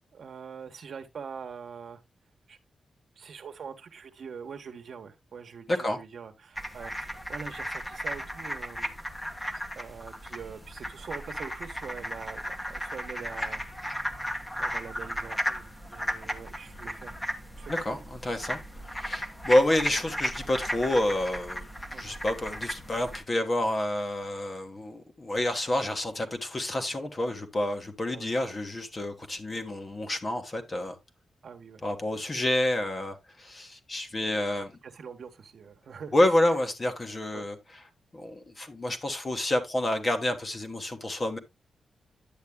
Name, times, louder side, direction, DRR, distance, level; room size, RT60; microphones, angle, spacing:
voice 1, 0.1-2.0 2.5-2.6 3.2-8.9 9.5-13.6 14.6-17.2 17.6-18.2 19.5-19.6 21.9-22.1 28.1-28.3 31.4-31.8 32.2-32.3 34.3-36.2 37.3-37.5, right 6 dB, 55° right, 1.2 m, -44 dB
voice 2, 5.7-6.0 17.7-18.6 18.9-21.6 22.0-30.9 31.8-34.7 36.1-37.6 38.1-41.4, left 1 dB, 25° left, 1.2 m, -28 dB
sound 1, 6.6-23.2, equal, 10° left, 1.0 m, -35 dB
10.5 x 8.2 x 2.2 m
wide cardioid pair, 160°, 0 cm